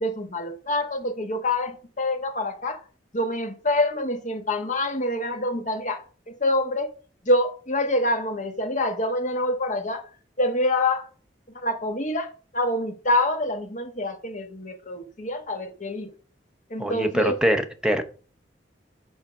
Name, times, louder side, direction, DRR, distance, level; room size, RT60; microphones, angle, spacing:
voice 1, 0.0-2.8 3.1-6.9 7.3-10.0 10.4-11.0 11.6-12.3 12.5-16.1 16.7-17.4, left 1 dB, 45° left, 1.4 m, -26 dB
voice 2, 16.8-18.0, equal, 5° right, 0.8 m, -23 dB
8.3 x 4.1 x 5.9 m
head